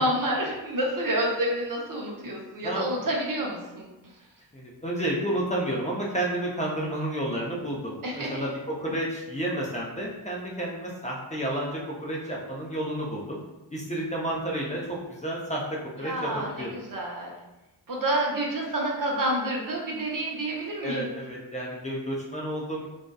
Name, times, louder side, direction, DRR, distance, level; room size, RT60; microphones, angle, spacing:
voice 1, 0.0-3.9 8.0-8.4 16.0-17.3 17.9-21.1, right 1 dB, 45° right, -2 dB, 0.7 m, -28 dB
voice 2, 4.5-13.4 13.7-16.8 20.8-22.9, right 1 dB, 15° left, -4 dB, 0.5 m, -31 dB
2.6 x 2.2 x 2.2 m, 1.0 s
supercardioid pair, 45°, 46 cm